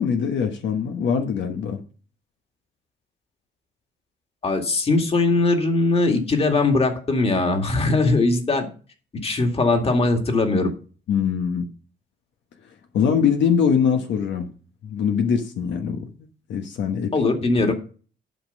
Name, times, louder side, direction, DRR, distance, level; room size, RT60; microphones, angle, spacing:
voice 1, 0.0-1.8 11.1-11.7 12.9-14.5 14.8-16.1 16.5-17.1, left 7 dB, 75° left, 1.2 m, -22 dB
voice 2, 4.4-8.7 9.2-10.7 17.1-17.7, left 3 dB, 30° left, 2.1 m, -20 dB
11.5 x 5.2 x 5.5 m
cardioid pair, 125°, 19 cm